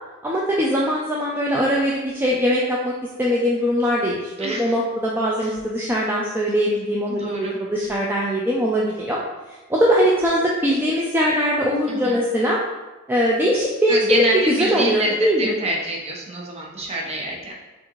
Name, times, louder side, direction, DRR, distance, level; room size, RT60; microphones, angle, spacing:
voice 1, 0.2-2.9 3.2-9.2 9.7-12.6 13.1-15.5, equal, 10° right, -4 dB, 0.4 m, -21 dB
voice 2, 4.4-4.8 5.4-5.5 7.1-7.6 11.9-12.2 13.9-17.5, right 1 dB, 30° right, -2 dB, 0.8 m, -26 dB
6.1 x 2.5 x 3.0 m, 1.1 s
head